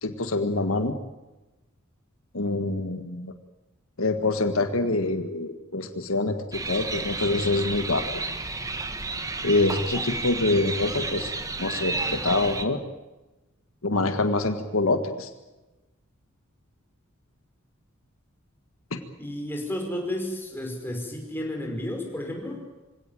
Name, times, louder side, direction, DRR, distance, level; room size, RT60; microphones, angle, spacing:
voice 1, 0.0-0.9 2.3-3.3 4.0-8.1 9.4-11.3 11.6-12.8 13.8-15.3, left 2 dB, 75° left, 7 dB, 1.7 m, -25 dB
sound 1, 6.5-12.7, right 3 dB, 15° right, 1.5 m, -31 dB
voice 2, 19.2-22.6, left 1 dB, 10° left, 1 dB, 5.5 m, -32 dB
25.5 x 17.0 x 9.1 m, 1.1 s
head